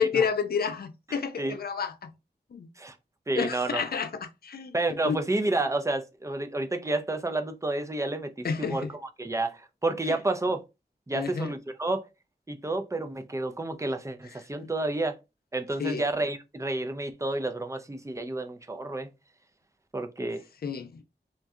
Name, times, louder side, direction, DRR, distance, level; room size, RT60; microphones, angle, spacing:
voice 1, 0.0-2.1 2.5-2.7 3.3-5.2 8.4-8.9 10.1-10.2 11.1-11.5 15.8-16.0 20.6-21.0, left 6 dB, 55° left, 0.4 m, -30 dB
voice 2, 1.1-1.5 2.8-3.0 3.3-3.8 4.7-10.6 11.1-12.1 12.5-15.2 15.5-19.1 19.9-20.4, right 2 dB, 15° right, 0.4 m, -30 dB
2.7 x 2.1 x 2.3 m
wide cardioid pair, 45°, 19 cm